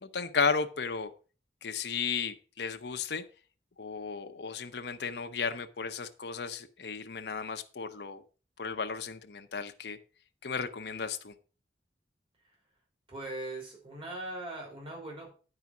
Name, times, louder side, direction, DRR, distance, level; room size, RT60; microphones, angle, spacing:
voice 1, 0.0-1.1 1.6-3.2 3.8-8.2 8.6-10.0 10.4-11.3, left 5 dB, 65° left, 6 dB, 0.8 m, -34 dB
voice 2, 13.1-15.3, right 2 dB, 30° right, -1 dB, 3.6 m, -40 dB
9.5 x 4.9 x 5.9 m, 0.36 s
head